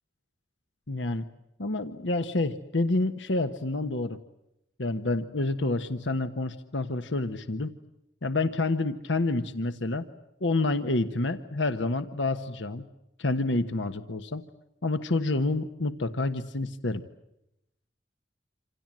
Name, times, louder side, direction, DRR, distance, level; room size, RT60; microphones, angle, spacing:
voice 1, 0.9-1.2 1.6-4.2 4.8-7.7 8.2-10.1 10.4-12.8 13.2-14.4 14.8-17.0, left 2 dB, 85° left, 9 dB, 1.3 m, -28 dB
27.5 x 27.5 x 7.6 m, 0.85 s
head